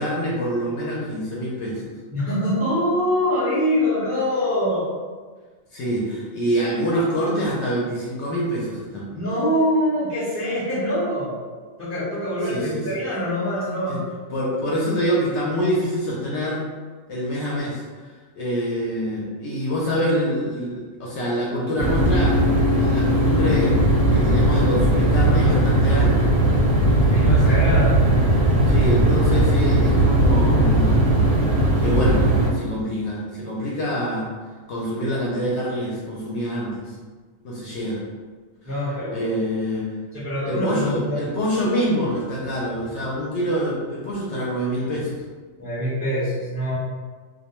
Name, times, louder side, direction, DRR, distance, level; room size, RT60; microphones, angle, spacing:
voice 1, 0.0-1.9 5.7-9.1 12.5-12.8 13.9-14.0 14.3-16.6 17.1-22.4 22.7-23.8 24.1-26.3 28.6-31.0 31.8-32.2 32.5-34.3 34.7-36.9 37.4-38.0 39.1-39.9 40.4-45.2, equal, 65° left, -5 dB, 0.8 m, -25 dB
voice 2, 2.1-4.9 9.1-11.3 11.8-14.1 27.1-28.0 38.6-39.4 40.1-41.2 45.6-46.7, equal, 15° right, -10 dB, 0.7 m, -24 dB
sound 1, 21.8-32.5, right 1 dB, 80° right, 1.0 m, -18 dB
2.3 x 2.1 x 2.9 m, 1.4 s
omnidirectional pair, 1.4 m